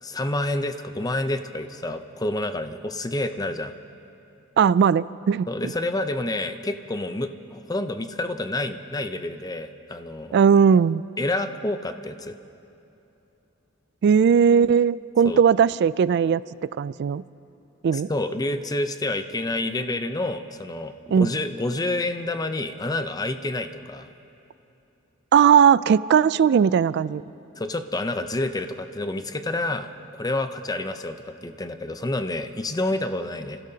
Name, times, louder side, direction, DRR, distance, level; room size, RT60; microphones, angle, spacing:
voice 1, 0.0-3.7 5.5-10.3 11.2-12.4 15.2-15.4 17.9-24.1 27.6-29.9 30.2-33.6, left 2 dB, 20° left, 9 dB, 0.6 m, -28 dB
voice 2, 4.6-5.7 10.3-11.0 14.0-16.4 16.8-17.2 17.8-18.1 21.1-21.3 25.3-27.2, right 7 dB, 55° right, 18 dB, 0.3 m, -18 dB
30.0 x 16.0 x 2.8 m, 2.9 s
head